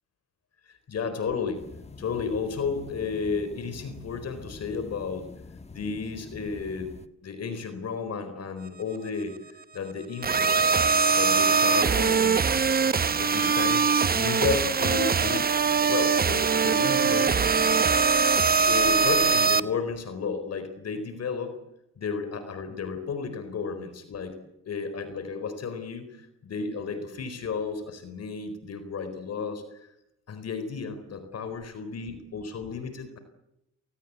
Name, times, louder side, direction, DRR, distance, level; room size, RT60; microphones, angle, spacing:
voice 1, 0.7-1.6 2.0-5.3 5.7-6.9 7.2-10.7 11.1-12.5 13.2-15.5 15.8-17.4 18.7-21.6 22.0-24.4 24.7-26.2 26.4-29.6 30.3-33.2, left 5 dB, 55° left, 9 dB, 4.3 m, -33 dB
sound 1, 1.5-7.1, left 3 dB, 20° left, 1.5 m, -45 dB
sound 2, 10.2-19.6, right 5 dB, 30° right, 1.0 m, -22 dB
29.5 x 19.0 x 8.3 m, 0.87 s
cardioid pair, 90°, 30 cm